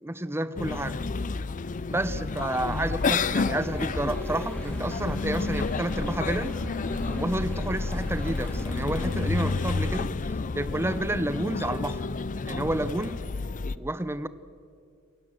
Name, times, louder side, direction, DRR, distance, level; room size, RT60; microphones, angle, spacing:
voice 1, 0.0-1.0 1.9-6.5 7.1-12.0 12.5-13.2 13.8-14.3, right 1 dB, 10° right, 14 dB, 0.7 m, -30 dB
sound 1, 0.6-13.8, left 4 dB, 35° left, 0.5 m, -30 dB
sound 2, 2.6-10.0, equal, 10° left, 4.3 m, -37 dB
28.5 x 15.0 x 7.8 m, 2.4 s
head